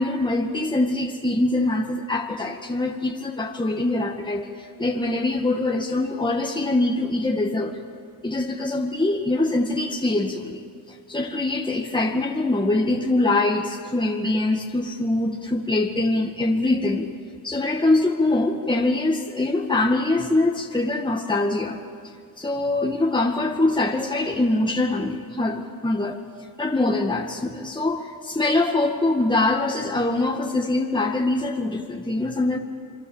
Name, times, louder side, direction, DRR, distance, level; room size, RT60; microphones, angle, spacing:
voice 1, 0.0-7.8 8.2-10.6 10.9-17.1 17.4-21.8 22.4-26.2 26.6-32.6, left 2 dB, 10° left, 2 dB, 2.0 m, -23 dB
27.5 x 23.0 x 7.3 m, 2.3 s
cardioid pair, 90°, 40 cm